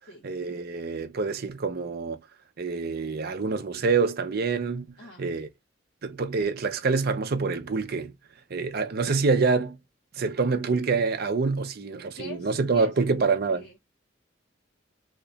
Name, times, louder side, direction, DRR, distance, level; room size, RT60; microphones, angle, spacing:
voice 1, 0.2-2.2 2.6-5.5 6.0-8.1 8.5-9.8 10.2-13.6, right 4 dB, 55° right, 0.6 m, -26 dB
voice 2, 12.2-12.9 13.2-13.8, left 2 dB, 55° left, 1.0 m, -44 dB
2.9 x 2.3 x 3.9 m
head